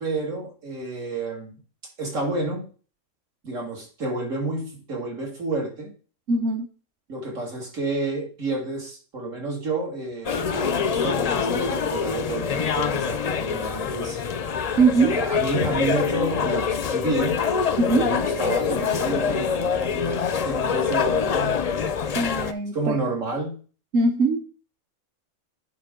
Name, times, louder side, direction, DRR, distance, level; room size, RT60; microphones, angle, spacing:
voice 1, 0.0-1.5 2.0-2.7 3.4-5.9 7.1-14.2 15.1-17.4 17.9-21.6 22.7-23.6, right 2 dB, 85° right, 2.6 m, -30 dB
voice 2, 6.3-6.7 14.8-15.2 17.8-18.1 22.1-23.0 23.9-24.4, right 3 dB, 60° right, 1.1 m, -21 dB
sound 1, 10.2-22.5, left 6 dB, 60° left, 0.4 m, -25 dB
9.2 x 5.2 x 3.7 m
omnidirectional pair, 1.3 m